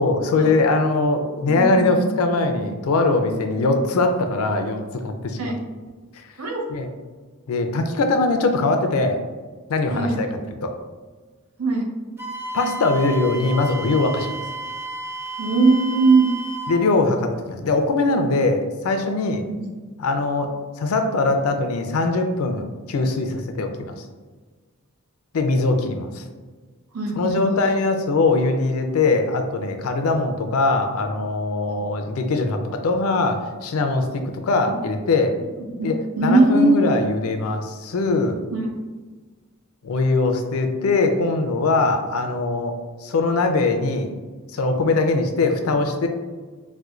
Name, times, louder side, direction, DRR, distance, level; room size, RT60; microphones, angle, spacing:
voice 1, 0.0-5.5 6.1-6.3 6.7-6.9 7.5-9.2 9.7-10.3 10.6-10.7 12.5-14.3 16.7-19.4 20.0-20.5 20.8-23.9 25.3-26.2 27.2-35.3 35.8-36.0 36.2-38.4 39.8-42.8 43.0-44.1 44.5-46.1, left 3 dB, 80° left, 5 dB, 0.4 m, -21 dB
voice 2, 1.5-2.1 3.5-3.7 5.3-5.6 6.4-6.7 9.9-10.2 11.6-11.9 15.4-16.3 19.5-19.7 26.9-27.6 34.7-34.8 35.6-35.7 36.2-36.9 38.5-38.7, right 2 dB, 85° right, 1 dB, 0.6 m, -20 dB
Wind instrument woodwind instrument, 12.2-16.8, right 3 dB, 10° right, 0.4 m, -32 dB
4.2 x 2.2 x 2.4 m, 1.4 s
head